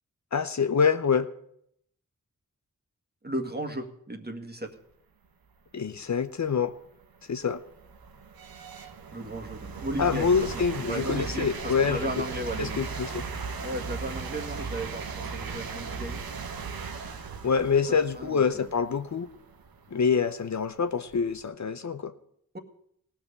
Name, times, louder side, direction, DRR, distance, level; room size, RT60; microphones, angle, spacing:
voice 1, 0.3-1.3 5.7-6.7 7.3-7.6 10.0-12.1 12.6-13.2 17.4-19.3 19.9-22.1, left 6 dB, 50° left, 10 dB, 0.8 m, -26 dB
voice 2, 3.2-4.7 9.1-12.8 13.6-16.2 18.2-18.7, right 1 dB, 30° right, 5 dB, 1.8 m, -35 dB
sound 1, 6.0-6.1 6.7-21.4, right 5 dB, 90° right, 1.1 m, -38 dB
17.0 x 5.8 x 8.2 m, 0.70 s
cardioid pair, 45°, 35 cm